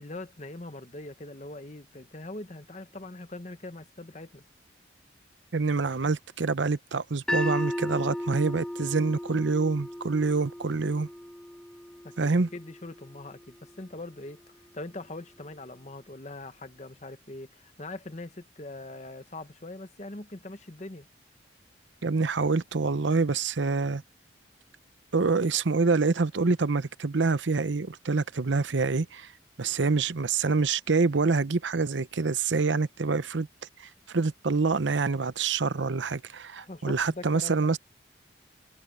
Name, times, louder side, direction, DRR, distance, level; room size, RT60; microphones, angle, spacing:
voice 1, 0.0-4.4 12.0-21.1 36.6-37.8, left 2 dB, 40° left, 1.2 m, -42 dB
voice 2, 5.5-11.1 12.2-12.5 22.0-24.0 25.1-29.3 29.6-33.5 33.8-37.8, right 4 dB, 85° right, 0.8 m, -26 dB
sound 1, 7.3-13.4, left 1 dB, 5° left, 1.3 m, -35 dB
head